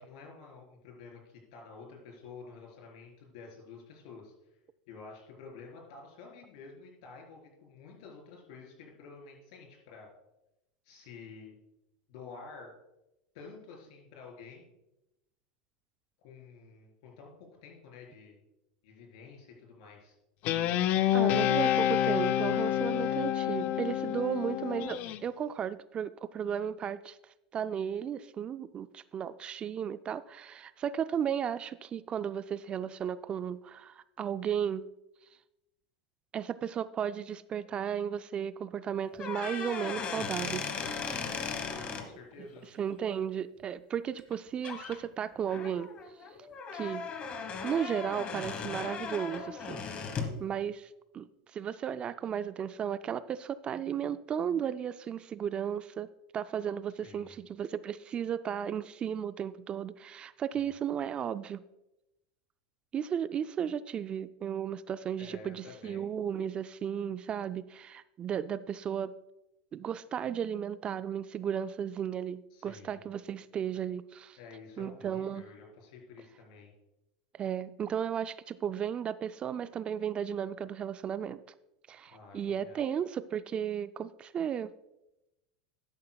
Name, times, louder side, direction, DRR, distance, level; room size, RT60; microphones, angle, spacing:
voice 1, 0.0-4.3 4.9-10.1 10.8-11.6 12.1-12.7 13.3-14.7 16.2-18.4 18.8-20.2 21.1-21.5 41.7-42.6 57.0-57.4 60.5-60.6 65.2-66.0 72.5-73.0 74.4-76.7 82.1-82.8, left 4 dB, 70° left, 1 dB, 4.1 m, -50 dB
Guitar, 20.4-25.2, left 12 dB, 50° left, 0.5 m, -28 dB
voice 2, 21.1-27.2 27.5-34.8 36.3-40.8 42.4-42.5 42.8-45.9 46.7-47.1 47.6-49.8 50.4-56.1 56.3-61.6 62.9-69.1 69.7-74.4 74.8-75.5 77.3-81.4 81.9-84.7, right 8 dB, 30° right, 14 dB, 0.3 m, -34 dB
sound 1, 39.1-42.0 44.2-44.3 44.6-45.0 45.5-50.4, left 5 dB, 30° left, 1.3 m, -37 dB
12.5 x 11.0 x 2.3 m, 0.92 s
supercardioid pair, 125°, 4 cm